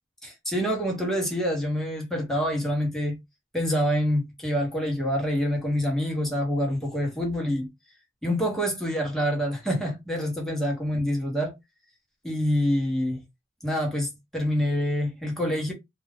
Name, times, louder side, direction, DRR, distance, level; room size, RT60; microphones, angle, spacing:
voice 1, 0.2-3.2 3.5-7.7 8.2-11.5 12.2-13.2 13.6-15.7, equal, ahead, 1.0 m, -26 dB
2.4 x 2.2 x 3.4 m
head